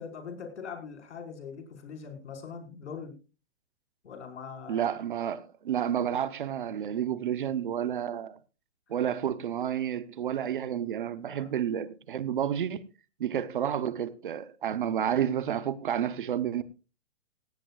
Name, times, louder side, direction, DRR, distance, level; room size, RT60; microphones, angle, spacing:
voice 1, 0.0-3.2 4.0-4.9 11.2-11.5, left 6 dB, 70° left, 5.2 m, -42 dB
voice 2, 4.7-8.4 8.9-12.8 13.2-16.6, right 9 dB, 45° right, 0.9 m, -30 dB
17.0 x 16.5 x 2.4 m
hypercardioid pair, 175°, 36 cm